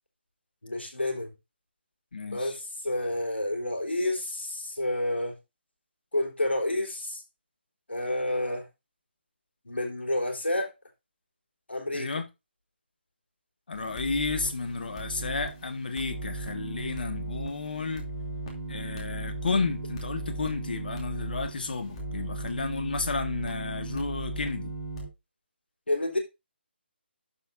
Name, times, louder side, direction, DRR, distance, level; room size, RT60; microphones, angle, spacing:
voice 1, 0.6-1.3 2.2-5.4 6.1-7.2 7.9-8.7 9.6-10.7 11.7-12.1 25.9-26.2, left 1 dB, 75° left, 3.6 m, -29 dB
voice 2, 2.1-2.5 11.9-12.3 13.7-18.1 18.7-24.7, left 4 dB, 55° left, 1.8 m, -32 dB
sound 1, 13.7-25.1, right 2 dB, 30° left, 2.9 m, -37 dB
11.5 x 6.8 x 2.6 m
figure-of-eight pair, 145°, 6 cm